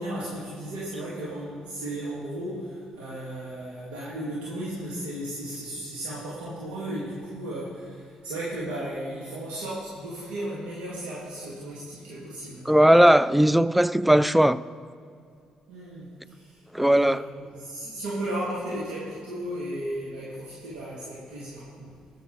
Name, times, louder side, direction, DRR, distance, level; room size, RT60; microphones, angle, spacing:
voice 1, 0.0-12.7 15.7-22.0, right 1 dB, 90° right, 2.1 m, -35 dB
voice 2, 12.7-14.6 16.7-17.2, right 1 dB, 5° right, 0.4 m, -18 dB
19.0 x 7.1 x 3.9 m
supercardioid pair, 55°, 2 cm